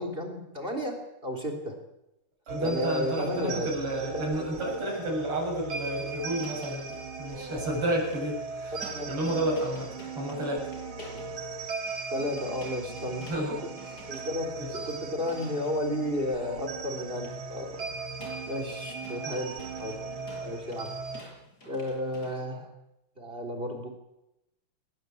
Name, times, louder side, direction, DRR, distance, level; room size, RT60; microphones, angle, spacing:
voice 1, 0.0-1.7 2.6-3.9 4.5-4.6 8.7-9.1 11.1-11.3 12.1-13.3 13.6-17.8 18.5-20.0 20.4-20.9 21.7-22.7 23.2-23.9, left 1 dB, 25° right, 4 dB, 3.7 m, -33 dB
sound 1, 2.5-21.2, right 4 dB, 65° right, 2.6 m, -38 dB
voice 2, 2.5-8.8 9.1-10.7 13.3-13.6 14.6-14.7 19.2-19.4 20.4-20.5, right 1 dB, 85° right, -2 dB, 7.9 m, -31 dB
sound 2, 6.1-22.3, left 1 dB, 45° left, 8.0 m, -52 dB
22.0 x 20.0 x 8.5 m, 0.90 s
omnidirectional pair, 2.4 m